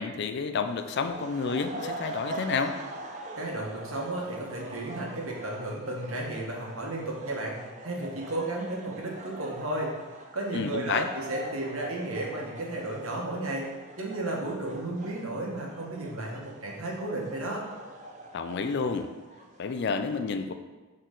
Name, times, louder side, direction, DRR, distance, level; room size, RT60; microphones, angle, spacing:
voice 1, 0.0-2.8 10.5-11.1 18.3-19.1 19.6-20.5, left 5 dB, 55° left, 9 dB, 0.4 m, -30 dB
sound 1, 0.6-19.9, right 1 dB, 35° right, 0.6 m, -43 dB
voice 2, 3.4-9.9 10.3-13.7 14.0-17.6, right 1 dB, 70° right, -2 dB, 1.4 m, -33 dB
6.4 x 4.3 x 3.9 m, 1.2 s
head